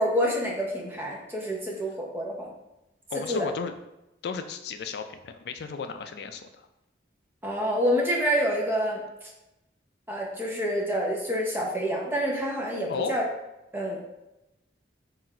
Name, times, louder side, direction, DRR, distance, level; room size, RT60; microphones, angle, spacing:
voice 1, 0.0-2.5 3.1-3.5 7.4-9.3 10.1-13.2 13.7-14.0, equal, 10° right, -3 dB, 0.7 m, -27 dB
voice 2, 3.1-3.7 4.2-6.7 12.9-13.1, left 5 dB, 65° left, 7 dB, 0.3 m, -34 dB
3.9 x 2.5 x 4.3 m, 0.94 s
head